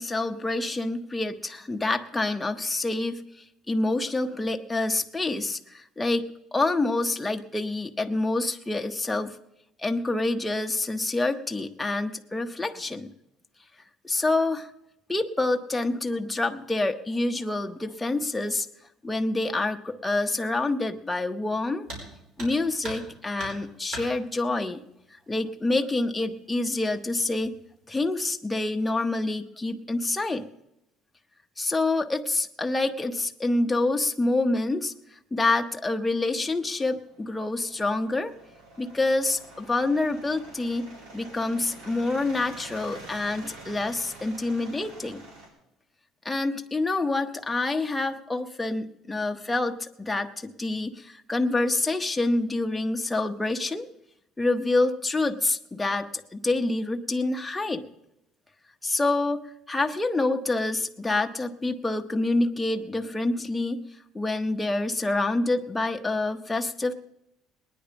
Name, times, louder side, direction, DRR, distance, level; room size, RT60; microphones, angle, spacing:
voice 1, 0.0-3.2 3.7-9.4 9.8-13.1 14.0-14.7 15.1-18.7 19.0-21.9 22.4-24.8 25.3-27.6 27.9-30.4 31.6-34.9 35.3-38.3 38.8-40.9 41.1-45.2 46.2-53.9 54.4-57.8 58.8-59.4 59.7-63.8 64.1-66.9, left 2 dB, 5° left, 4 dB, 0.7 m, -27 dB
sound 1, 21.8-22.1 22.4-23.1 23.4-24.1 25.3-25.4 25.9-26.0 26.7-27.1 27.4-27.8, right 1 dB, 55° right, 5.0 m, -39 dB
sound 2, 36.4-45.5, right 2 dB, 80° right, 4.6 m, -47 dB
20.0 x 9.8 x 5.1 m, 0.84 s
cardioid pair, 160°, 0 cm